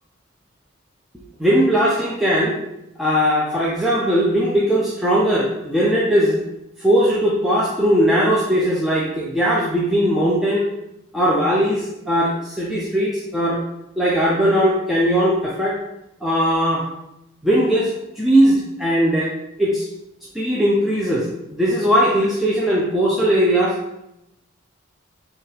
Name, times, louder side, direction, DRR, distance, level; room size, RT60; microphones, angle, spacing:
voice 1, 1.4-2.6 3.0-6.4 6.8-10.7 11.1-13.6 14.0-15.8 16.2-16.8 17.4-17.9 18.2-19.3 19.6-19.9 20.3-23.8, equal, ahead, -6 dB, 0.4 m, -19 dB
4.5 x 2.3 x 3.2 m, 0.88 s
head